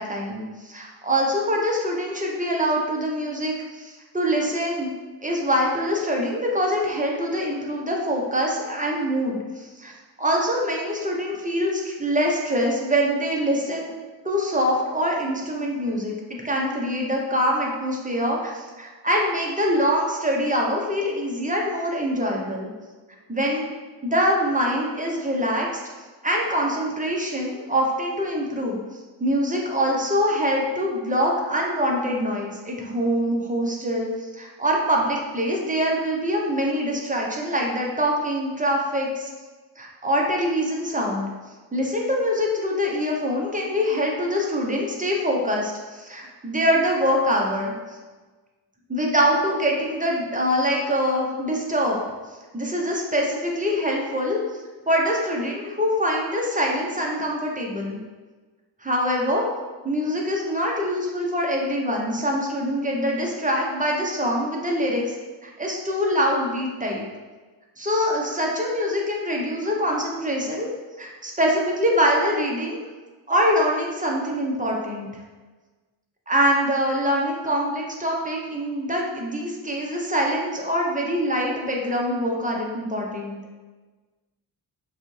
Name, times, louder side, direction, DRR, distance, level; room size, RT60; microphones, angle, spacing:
voice 1, 0.0-4.9 5.2-9.9 10.2-13.9 14.2-16.1 16.4-22.7 23.3-23.7 24.0-25.8 26.2-28.8 29.2-39.3 39.8-41.3 41.7-47.7 48.9-52.0 52.5-54.4 54.9-58.0 58.8-59.5 59.8-65.1 65.4-67.0 67.8-70.7 71.0-72.8 73.3-75.1 76.3-83.5, equal, 15° right, -1 dB, 0.8 m, -24 dB
5.3 x 2.4 x 3.2 m, 1.3 s
cardioid pair, 65°, 47 cm